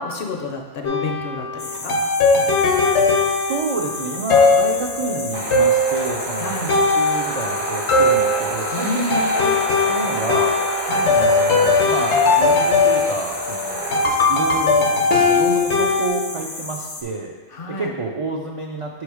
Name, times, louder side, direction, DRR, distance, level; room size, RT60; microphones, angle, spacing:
voice 1, 0.0-2.0 6.4-6.7 8.7-9.3 10.8-11.1 17.5-17.9, left 3 dB, 60° left, 2 dB, 0.8 m, -29 dB
sound 1, 0.8-16.1, left 3 dB, 75° left, 1.0 m, -19 dB
sound 2, 1.6-17.0, left 2 dB, 40° left, 0.3 m, -34 dB
voice 2, 3.5-9.6 9.8-10.6 11.1-14.0 14.3-17.3 17.8-19.0, right 3 dB, 60° right, -1 dB, 0.3 m, -29 dB
sound 3, 5.3-14.1, right 2 dB, 85° right, 1.2 m, -29 dB
6.2 x 3.2 x 4.7 m, 1.5 s
omnidirectional pair, 1.2 m